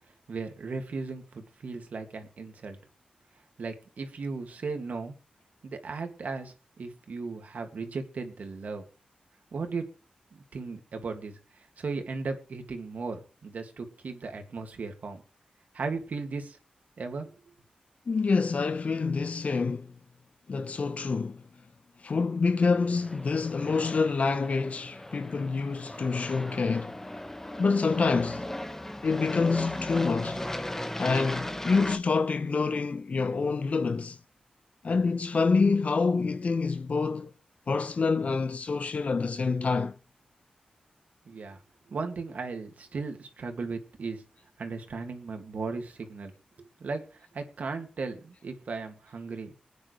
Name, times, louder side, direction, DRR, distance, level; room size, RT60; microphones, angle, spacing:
voice 1, 0.3-2.8 3.6-5.1 5.6-8.8 9.5-9.8 10.3-15.2 15.7-16.6 17.0-17.3 41.3-41.6 41.9-44.2 44.6-46.3 46.8-49.5, right 4 dB, 70° right, 2.3 m, -36 dB
voice 2, 18.1-19.9 20.5-21.4 22.0-27.0 27.6-28.5 29.0-30.5 31.0-34.2 34.8-37.3 37.7-40.0, left 4 dB, 55° left, 0.9 m, -27 dB
Aircraft, 22.8-32.0, left 1 dB, 15° left, 1.6 m, -37 dB
23.0 x 9.5 x 3.3 m
cardioid pair, 65°, 3 cm